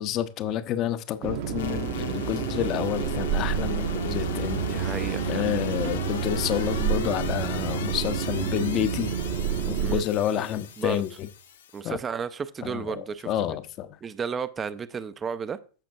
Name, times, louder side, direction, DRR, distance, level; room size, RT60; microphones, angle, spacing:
voice 1, 0.0-4.6 5.3-9.1 9.8-11.3 11.8-12.0 12.6-12.9 13.3-13.9, left 11 dB, 35° left, 0.7 m, -29 dB
sound 1, 1.2-10.0, right 7 dB, 50° right, 1.0 m, -29 dB
sound 2, 1.5-11.8, left 8 dB, 60° left, 1.1 m, -39 dB
voice 2, 4.7-5.5 9.8-10.0 10.8-11.0 11.7-13.6 14.0-15.6, right 6 dB, 20° right, 0.5 m, -33 dB
14.5 x 5.9 x 2.4 m
figure-of-eight pair, 90°, 0 cm